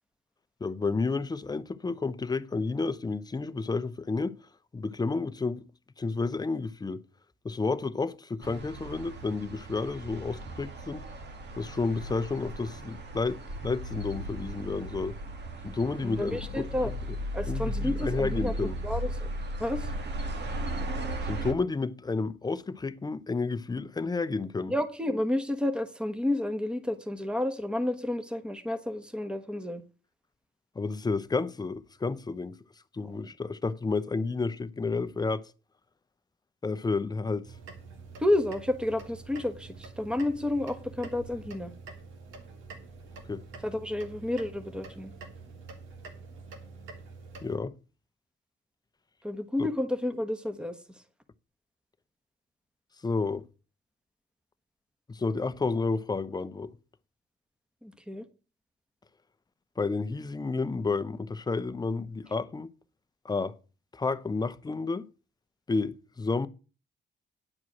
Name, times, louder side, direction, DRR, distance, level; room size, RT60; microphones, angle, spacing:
voice 1, 0.6-4.3 4.7-5.6 6.0-7.0 7.4-11.1 11.6-15.1 15.6-16.7 17.5-18.8 21.3-24.7 30.8-32.5 32.9-35.5 36.6-37.5 43.3-43.4 47.4-47.7 49.6-49.7 53.0-53.4 55.1-56.7 59.8-62.7 63.2-63.5 63.9-65.1 65.7-66.5, left 4 dB, 20° left, 0.7 m, -31 dB
sound 1, 8.4-21.5, right 1 dB, 60° right, 1.9 m, -36 dB
voice 2, 16.0-16.9 17.3-19.3 19.6-19.9 24.7-29.8 38.2-41.7 43.6-45.1 49.2-50.8 57.8-58.3, left 1 dB, 5° right, 1.3 m, -30 dB
sound 2, 37.4-47.6, right 4 dB, 80° right, 2.1 m, -46 dB
9.7 x 4.7 x 7.7 m
cardioid pair, 90°, 20 cm